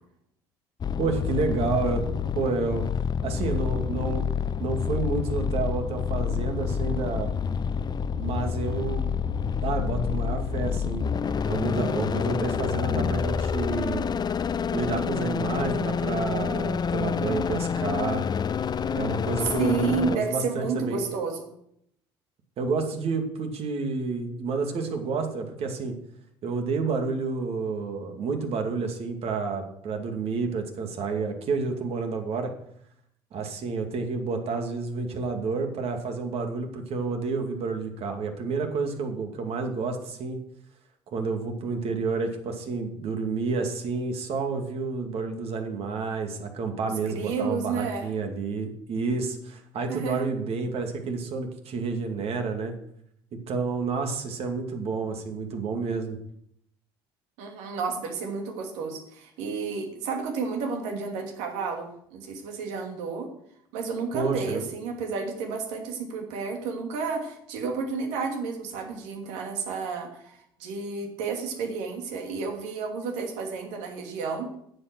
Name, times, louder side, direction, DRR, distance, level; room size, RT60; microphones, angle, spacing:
sound 1, 0.8-20.2, left 6 dB, 35° left, 0.7 m, -28 dB
voice 1, 1.0-2.0 2.3-2.8 3.2-4.3 4.6-7.3 8.1-11.1 11.5-14.0 14.7-18.2 18.9-21.1 22.6-26.0 26.4-32.5 33.3-40.4 41.1-52.7 53.3-56.2 64.1-64.7, right 4 dB, 55° right, 4 dB, 2.4 m, -30 dB
voice 2, 19.6-21.5 46.8-48.1 49.9-50.3 57.4-63.3 63.7-74.5, right 5 dB, 75° right, 3 dB, 2.5 m, -31 dB
9.5 x 8.6 x 6.2 m, 0.71 s
hypercardioid pair, 65°, 12 cm